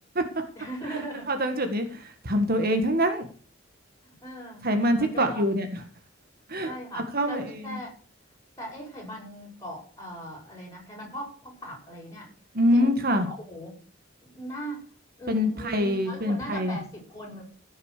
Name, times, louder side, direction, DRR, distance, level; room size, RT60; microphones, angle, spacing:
voice 1, 0.6-1.3 4.0-4.6 5.0-5.4 6.6-7.9 8.6-12.3 12.7-13.7 14.2-14.8 15.2-17.5, equal, 15° left, -2 dB, 7.7 m, -39 dB
voice 2, 1.3-3.3 4.6-5.8 6.5-6.7 7.1-7.8 12.5-13.3 15.3-16.8, equal, 50° right, 7 dB, 1.8 m, -25 dB
16.0 x 6.7 x 6.7 m, 0.42 s
head